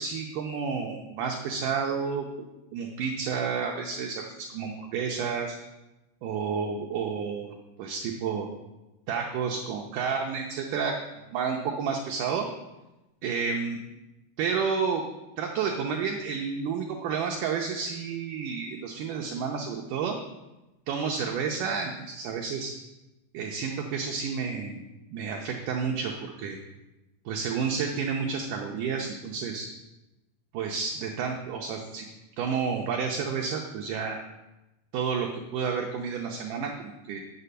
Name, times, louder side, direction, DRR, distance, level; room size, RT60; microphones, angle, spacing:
voice 1, 0.0-2.3 2.7-5.6 6.2-8.5 9.1-11.0 11.3-12.5 13.2-13.8 14.4-15.0 15.4-20.2 20.9-22.7 23.3-24.9 25.1-26.6 27.3-29.7 30.5-32.1 32.4-34.2 34.9-37.2, right 6 dB, 75° right, 1 dB, 2.1 m, -30 dB
9.6 x 6.0 x 6.7 m, 1.0 s
omnidirectional pair, 4.4 m